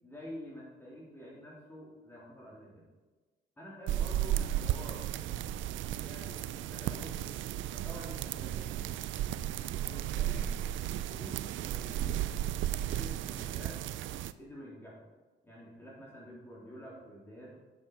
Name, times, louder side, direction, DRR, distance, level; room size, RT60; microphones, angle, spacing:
voice 1, 0.0-2.9 3.6-5.6 6.0-7.4 7.7-9.0 9.7-10.6 10.9-12.3 12.6-13.8 14.4-15.0 15.4-17.6, equal, 10° left, -6 dB, 3.6 m, -48 dB
sound 1, 3.9-14.3, right 12 dB, 75° right, 0.5 m, -34 dB
9.1 x 7.7 x 4.9 m, 1.3 s
cardioid pair, 90°, 20 cm